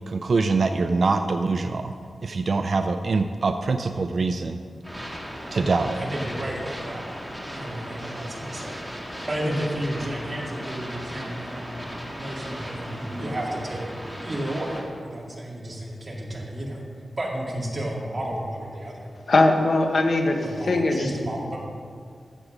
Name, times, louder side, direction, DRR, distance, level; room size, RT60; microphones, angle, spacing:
voice 1, 0.1-1.9 2.2-4.6 5.5-6.0, right 3 dB, 50° right, 7 dB, 0.4 m, -24 dB
sound 1, 4.8-14.8, equal, 5° left, 1.8 m, -36 dB
voice 2, 6.0-7.1 7.5-8.8 9.3-11.7 12.2-13.9 14.2-16.8 17.2-19.1 20.4-21.6, right 1 dB, 30° right, -3 dB, 2.1 m, -32 dB
voice 3, 19.3-21.1, left 2 dB, 55° left, 3 dB, 1.1 m, -20 dB
14.5 x 7.2 x 5.0 m, 2.1 s
wide cardioid pair, 160°, 0 cm